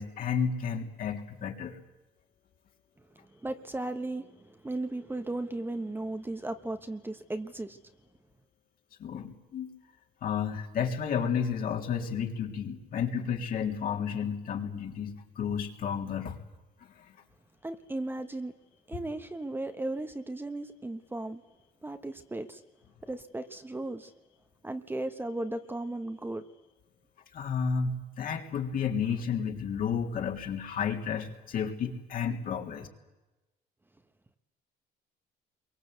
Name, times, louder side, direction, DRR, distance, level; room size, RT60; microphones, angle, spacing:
voice 1, 0.0-1.8 9.0-9.7 10.2-16.4 27.3-32.9, left 7 dB, 60° left, 2 dB, 3.5 m, -32 dB
voice 2, 3.4-7.8 17.6-18.5 18.9-21.4 21.8-22.6 23.1-24.1 24.6-26.4, right 2 dB, 10° right, 7 dB, 1.2 m, -36 dB
28.5 x 23.5 x 8.1 m, 1.0 s
cardioid pair, 110°, 17 cm